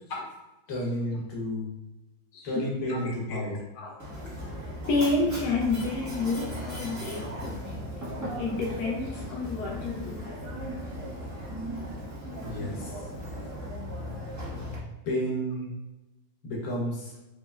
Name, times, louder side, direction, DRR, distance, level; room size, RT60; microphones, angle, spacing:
voice 1, 0.7-1.7 2.4-3.6 12.4-12.9 15.0-15.7 16.4-17.1, equal, 60° left, -4 dB, 1.4 m, -31 dB
voice 2, 2.3-3.0 3.3-3.4 3.8-3.9 4.9-7.7 8.4-10.6, left 3 dB, 85° left, -2 dB, 1.1 m, -30 dB
Mechanisms, 4.0-14.8, equal, 15° right, 0.6 m, -37 dB
5.3 x 2.0 x 2.3 m, 1.0 s
omnidirectional pair, 1.7 m